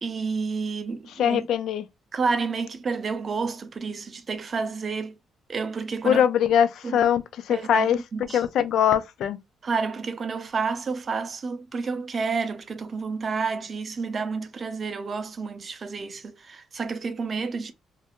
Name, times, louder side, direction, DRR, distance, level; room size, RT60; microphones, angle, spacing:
voice 1, 0.0-1.5 2.1-5.1 5.5-6.2 6.8-7.0 7.5-8.4 9.6-17.7, right 4 dB, 35° right, 0.4 m, -30 dB
voice 2, 1.2-1.9 6.0-8.0 8.3-9.4, left 9 dB, 70° left, 0.3 m, -22 dB
2.5 x 2.4 x 2.8 m
cardioid pair, 130°, 0 cm